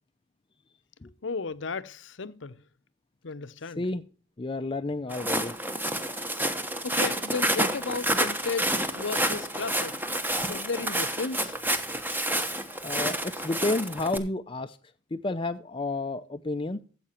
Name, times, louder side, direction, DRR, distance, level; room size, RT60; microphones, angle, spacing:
voice 1, 1.2-2.6 3.2-3.8 6.5-10.0 10.5-11.6, left 4 dB, 70° left, 0.7 m, -34 dB
voice 2, 3.6-4.0 4.4-5.5 12.8-14.8 15.1-16.8, left 2 dB, 25° left, 0.5 m, -31 dB
Walk footsteps, 5.1-14.2, right 1 dB, 10° right, 1.1 m, -29 dB
13.5 x 8.0 x 4.3 m
head